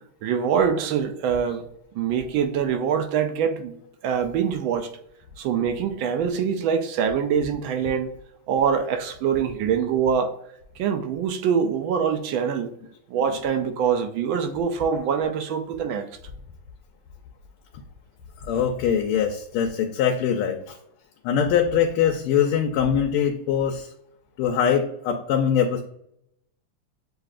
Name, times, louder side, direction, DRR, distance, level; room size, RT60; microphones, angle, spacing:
voice 1, 0.2-1.6 1.9-3.8 4.0-4.9 5.4-8.1 8.5-10.3 10.8-12.7 13.1-16.1, right 7 dB, 75° right, 1.2 m, -24 dB
voice 2, 18.4-20.8 21.2-23.9 24.4-25.8, left 8 dB, 85° left, 1.5 m, -22 dB
7.7 x 2.6 x 2.4 m
omnidirectional pair, 2.4 m